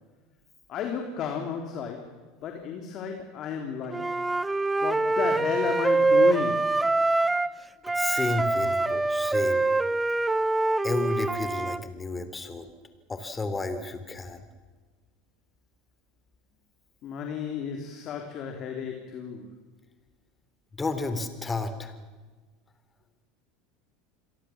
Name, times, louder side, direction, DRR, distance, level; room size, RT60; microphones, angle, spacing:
voice 1, 0.7-2.2 2.4-4.1 4.8-6.8 17.0-19.5, left 7 dB, 45° left, 4 dB, 3.5 m, -33 dB
Wind instrument woodwind instrument, 3.9-7.6 7.8-11.8, right 2 dB, 10° right, 0.8 m, -24 dB
voice 2, 7.9-9.7 10.8-12.7 13.1-14.4 20.8-21.9, left 3 dB, 20° left, 10 dB, 3.5 m, -32 dB
27.5 x 22.5 x 7.4 m, 1.4 s
hypercardioid pair, 80°, 0 cm